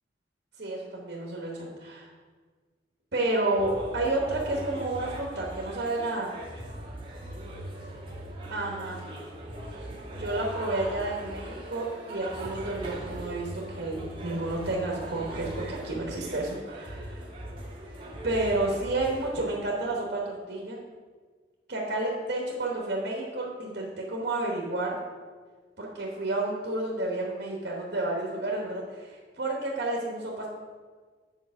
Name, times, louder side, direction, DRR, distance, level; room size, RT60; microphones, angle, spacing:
voice 1, 0.6-2.1 3.1-6.3 8.5-9.0 10.0-17.2 18.2-20.8 21.7-25.0 25.8-30.5, right 2 dB, 65° right, -2 dB, 1.1 m, -31 dB
sound 1, 3.5-19.3, right 1 dB, 30° right, 1.5 m, -40 dB
8.0 x 4.3 x 5.9 m, 1.5 s
head